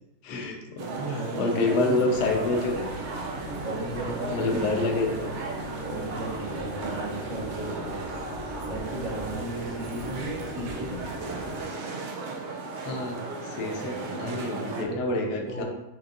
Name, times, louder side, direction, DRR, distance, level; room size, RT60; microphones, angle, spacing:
voice 1, 0.2-0.9 1.3-2.8 4.3-5.3 12.8-15.6, left 3 dB, 70° left, 2 dB, 1.3 m, -27 dB
sound 1, 0.8-14.9, right 3 dB, 75° right, 0.6 m, -35 dB
voice 2, 0.9-2.0 3.6-4.5 4.9-5.1 5.8-8.2 8.6-11.0 14.8-15.2 15.4-15.6, right 2 dB, 55° right, -5 dB, 1.6 m, -35 dB
sound 2, 2.1-11.6, left 1 dB, 20° right, 0.7 m, -40 dB
6.2 x 3.0 x 2.5 m, 1.0 s
omnidirectional pair, 1.8 m